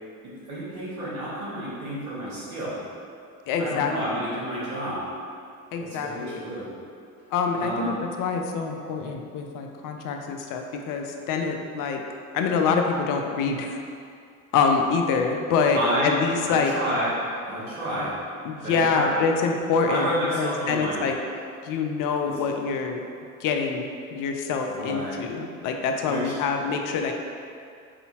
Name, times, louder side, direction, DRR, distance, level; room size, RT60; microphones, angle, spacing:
voice 1, 0.2-2.8 3.6-5.1 5.8-6.7 7.6-8.0 15.7-16.1 16.4-17.1 17.4-18.2 18.6-19.1 19.9-21.0 24.6-25.2 26.1-26.3, right 1 dB, 85° right, -8 dB, 1.2 m, -30 dB
voice 2, 3.5-3.9 5.7-6.4 7.3-12.0 12.3-13.8 14.5-16.7 18.0-18.1 18.4-21.2 21.6-23.0 23.4-27.1, left 5 dB, 50° left, 3 dB, 0.5 m, -25 dB
4.8 x 2.7 x 2.8 m, 2.4 s
hypercardioid pair, 60°, 42 cm